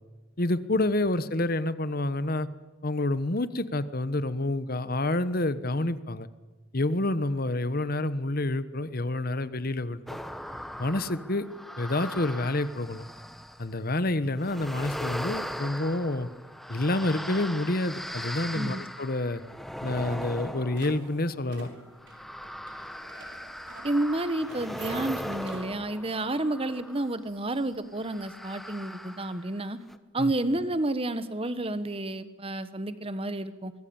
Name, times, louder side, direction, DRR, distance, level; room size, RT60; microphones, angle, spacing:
voice 1, 0.4-2.5 2.8-6.3 6.7-10.0 10.8-11.5 11.8-13.0 13.6-16.3 16.7-19.4 19.8-21.7 30.2-30.3, left 2 dB, 45° left, 14 dB, 1.2 m, -28 dB
sound 1, 10.1-13.7 14.4-27.2 28.0-29.6 29.9-30.0, equal, ahead, 1.0 m, -39 dB
sound 2, 16.9-17.0 17.5-17.8 18.1-19.0 19.3-19.4 19.6-19.7 20.2-25.9, right 4 dB, 60° right, 5.6 m, -49 dB
voice 2, 23.8-29.8 30.1-33.7, right 1 dB, 30° right, 12 dB, 1.3 m, -30 dB
24.0 x 20.5 x 8.8 m, 1.2 s
head